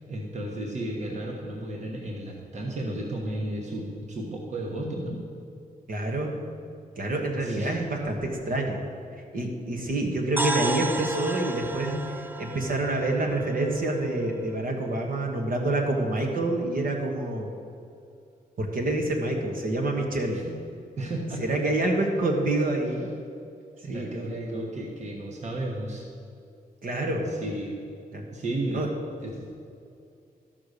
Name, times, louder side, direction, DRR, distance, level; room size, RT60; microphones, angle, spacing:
voice 1, 0.1-5.2 7.4-7.8 11.8-12.0 20.3-20.6 21.0-21.4 23.8-26.1 27.2-27.8 28.3-28.9 29.2-29.5, right 1 dB, 50° right, -1 dB, 1.3 m, -33 dB
voice 2, 5.9-6.3 7.0-8.8 9.3-11.9 12.4-17.5 18.6-20.4 21.4-23.1 23.9-24.3 26.8-27.3 28.1-28.2 28.7-28.9, right 2 dB, 65° right, 1 dB, 1.4 m, -27 dB
sound 1, 10.4-14.3, right 2 dB, 10° right, 0.4 m, -33 dB
13.0 x 5.8 x 6.7 m, 2.5 s
wide cardioid pair, 170°, 16 cm